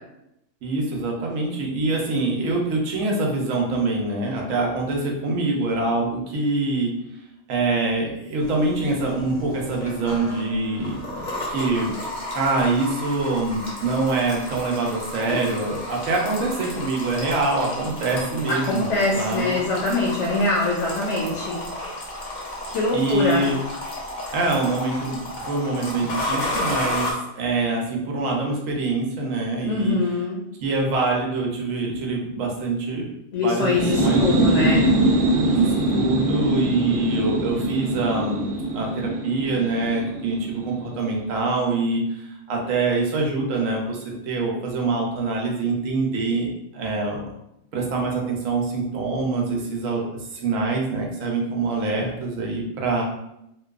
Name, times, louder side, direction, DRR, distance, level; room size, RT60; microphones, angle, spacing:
voice 1, 0.6-7.0 7.5-11.0 11.5-11.9 12.3-19.5 22.9-23.6 24.3-27.1 27.4-30.0 30.6-33.1 33.4-34.9 35.5-44.0 44.2-46.5 46.7-47.3 47.7-50.0 50.3-53.0, right 3 dB, 90° right, -1 dB, 1.0 m, -25 dB
sound 1, 8.4-27.1, left 1 dB, 45° left, 0.7 m, -32 dB
voice 2, 18.5-21.6 22.7-23.4 29.6-30.4 33.3-34.8, left 2 dB, 70° left, -3 dB, 0.9 m, -23 dB
sound 2, 33.6-41.1, right 2 dB, 60° right, 0.7 m, -23 dB
2.8 x 2.2 x 2.3 m, 0.82 s
omnidirectional pair, 1.3 m